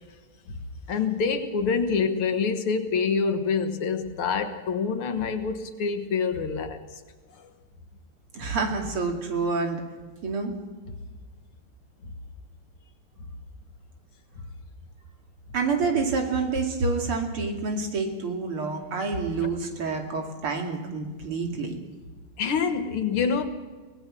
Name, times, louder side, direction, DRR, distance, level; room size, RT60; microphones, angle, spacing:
voice 1, 0.9-6.8 7.4-7.5 22.4-23.4, left 5 dB, 80° left, 2.4 m, -26 dB
voice 2, 8.3-9.8 10.2-10.6 15.5-21.8, right 4 dB, 85° right, 3.4 m, -28 dB
23.5 x 18.5 x 6.3 m
omnidirectional pair, 2.3 m